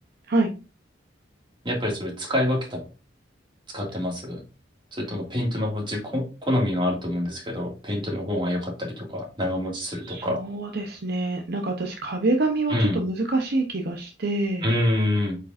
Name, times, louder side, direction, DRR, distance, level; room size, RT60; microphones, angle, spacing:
voice 1, 1.6-2.8 3.7-4.4 4.9-10.4 12.7-13.0 14.6-15.4, left 1 dB, 25° right, 0 dB, 2.1 m, -26 dB
voice 2, 10.0-14.7, right 2 dB, 55° right, 3 dB, 0.8 m, -26 dB
8.4 x 5.1 x 2.5 m, 0.33 s
head